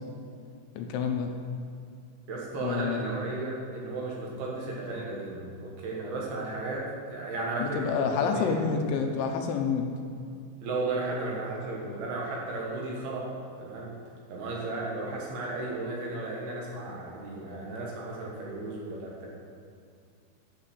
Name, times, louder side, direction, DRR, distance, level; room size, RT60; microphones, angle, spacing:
voice 1, 0.8-1.3 2.6-3.0 7.6-9.9, left 6 dB, 80° left, 4 dB, 3.0 m, -28 dB
voice 2, 2.3-8.6 8.9-9.0 10.6-13.3 13.6-14.0 14.3-19.3, right 2 dB, 65° right, -3 dB, 2.8 m, -34 dB
9.8 x 7.3 x 6.4 m, 2.4 s
omnidirectional pair, 5.6 m